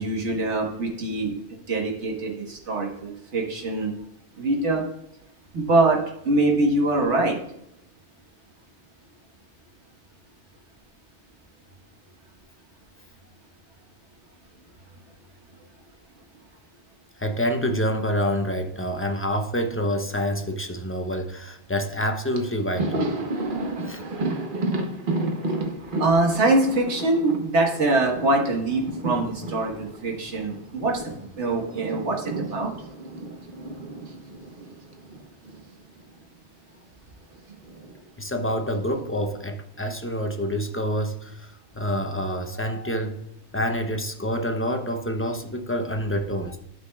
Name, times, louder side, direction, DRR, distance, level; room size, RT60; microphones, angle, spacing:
voice 1, 0.0-1.4 1.7-3.9 4.4-4.8 5.5-6.0 6.2-7.4 26.0-32.7, right 2 dB, 85° right, 0 dB, 1.7 m, -23 dB
voice 2, 17.2-23.0 23.8-24.0 38.2-43.1 43.5-46.6, equal, 15° left, 4 dB, 0.6 m, -27 dB
Thunder, 22.3-31.2 31.4-35.7 36.0-36.2 37.3-38.0, right 2 dB, 50° right, 1.1 m, -32 dB
11.0 x 6.1 x 2.3 m, 0.79 s
omnidirectional pair, 1.1 m